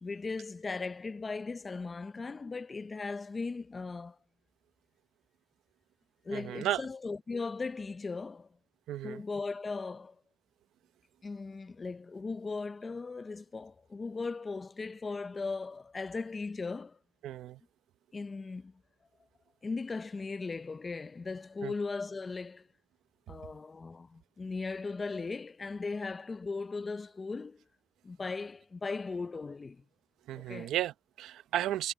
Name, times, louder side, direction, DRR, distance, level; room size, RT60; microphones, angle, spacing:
voice 1, 0.0-4.2 6.2-8.5 9.0-10.2 11.2-17.0 18.1-18.7 19.6-22.7 23.3-27.6 28.0-29.8 30.4-30.7, left 4 dB, 30° left, 0.7 m, -38 dB
voice 2, 6.3-6.8 8.9-9.2 17.2-17.6 21.6-21.7 30.3-31.9, right 13 dB, 85° right, 0.7 m, -34 dB
cardioid pair, 90°, 0 cm